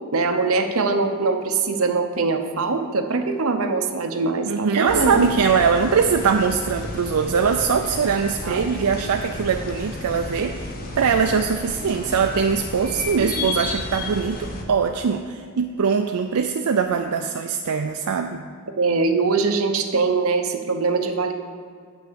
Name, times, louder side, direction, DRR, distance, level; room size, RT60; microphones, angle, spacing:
voice 1, 0.1-5.2 8.4-8.7 13.2-13.5 18.8-21.3, right 4 dB, 70° right, 5 dB, 0.9 m, -22 dB
voice 2, 4.5-10.7 11.0-18.5, right 6 dB, 85° right, 5 dB, 0.4 m, -22 dB
sound 1, 4.9-14.6, left 2 dB, 40° left, 1.1 m, -32 dB
8.5 x 6.1 x 6.8 m, 2.2 s
head